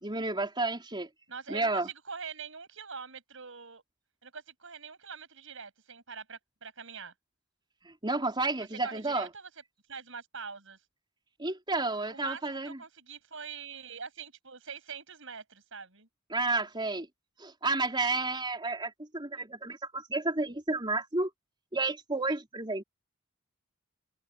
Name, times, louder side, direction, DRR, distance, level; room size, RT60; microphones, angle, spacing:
voice 1, 0.0-1.1 1.5-1.9 7.8-9.3 11.4-12.8 16.3-17.1 17.4-21.3 21.7-22.8, right 3 dB, 25° right, 4.1 m, -31 dB
voice 2, 1.3-3.8 4.2-7.1 8.6-9.5 9.9-10.8 12.1-16.1, right 5 dB, 70° right, 7.8 m, -44 dB
open air
head